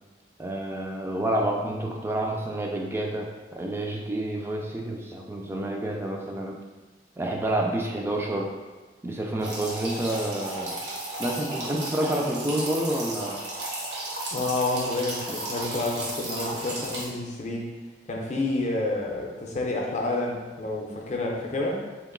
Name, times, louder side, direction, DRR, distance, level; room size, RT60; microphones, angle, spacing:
voice 1, 0.4-6.6 7.2-8.5 9.0-10.8 11.2-13.4 15.3-15.4, right 1 dB, 15° right, 0 dB, 0.3 m, -29 dB
sound 1, 9.4-17.0, right 1 dB, 80° right, 1.0 m, -34 dB
voice 2, 14.3-17.7 18.1-21.9, left 2 dB, 40° left, -1 dB, 0.5 m, -29 dB
2.9 x 2.5 x 3.8 m, 1.3 s
head